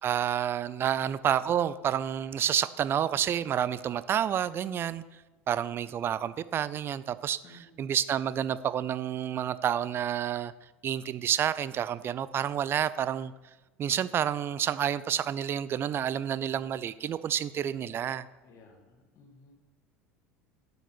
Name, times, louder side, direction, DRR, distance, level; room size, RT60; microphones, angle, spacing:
voice 1, 0.0-5.0 5.5-10.5 10.8-13.3 13.8-18.3, right 9 dB, 35° right, 16 dB, 0.4 m, -29 dB
voice 2, 7.4-7.8 16.4-16.5 18.4-19.5, left 3 dB, 45° left, 3 dB, 1.9 m, -55 dB
8.1 x 6.9 x 6.1 m, 1.2 s
figure-of-eight pair, 70°, 7 cm